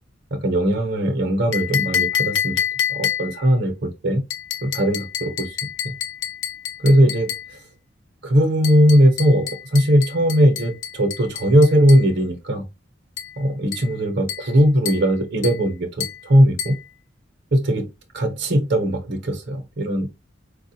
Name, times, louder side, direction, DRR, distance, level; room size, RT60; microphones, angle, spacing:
voice 1, 0.3-2.6 2.9-4.2 4.6-5.6 5.8-5.9 6.8-7.3 8.2-12.6 13.4-16.7 17.5-17.9 18.1-20.1, equal, 60° right, 0.9 m, -19 dB
sound 1, 1.5-3.5 4.3-7.5 8.6-12.1 13.2-13.4 13.7-14.0 14.3-14.6 14.9-15.1 15.4-15.7 16.0-16.3 16.6-16.8, left 9 dB, 80° left, 0.5 m, -28 dB
4.5 x 2.4 x 2.7 m
head